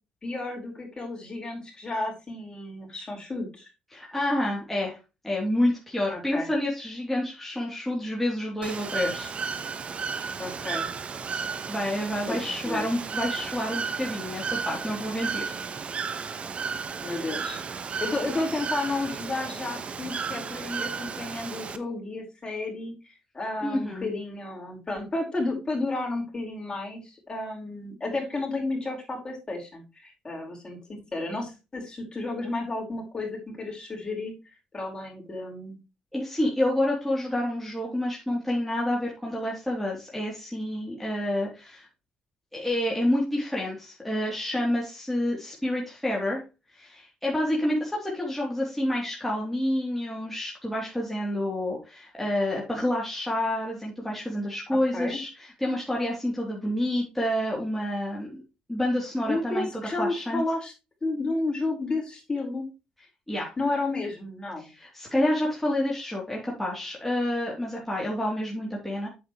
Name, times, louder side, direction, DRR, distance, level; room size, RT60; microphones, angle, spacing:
voice 1, 0.2-3.7 6.1-6.5 10.4-10.9 12.3-12.9 17.0-17.6 18.0-22.9 23.3-34.3 34.7-35.8 54.7-55.2 59.3-60.7 61.0-62.6 63.6-64.7, left 2 dB, 30° left, -1 dB, 4.9 m, -32 dB
voice 2, 3.9-5.0 5.2-9.3 11.7-15.5 23.6-24.1 36.1-41.9 42.5-46.4 46.7-58.3 58.7-59.7 60.0-60.4 63.3-63.5 64.6-69.1, left 1 dB, 5° left, -4 dB, 3.2 m, -28 dB
Bird / Water, 8.6-21.8, right 5 dB, 45° right, 1.0 m, -34 dB
8.1 x 7.8 x 3.2 m, 0.28 s
supercardioid pair, 65°, 3 cm